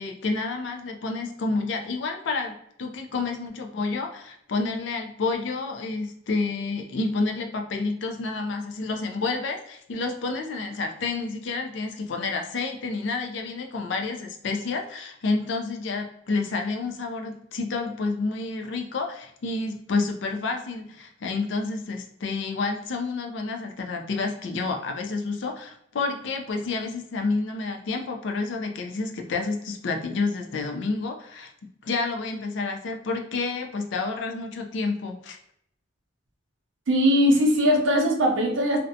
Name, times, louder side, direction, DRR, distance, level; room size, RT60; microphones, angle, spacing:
voice 1, 0.0-2.5 2.8-31.5 31.8-35.4, left 3 dB, 70° left, 4 dB, 0.4 m, -29 dB
voice 2, 36.9-38.8, equal, 80° right, 1 dB, 0.6 m, -20 dB
2.5 x 2.1 x 2.6 m, 0.71 s
head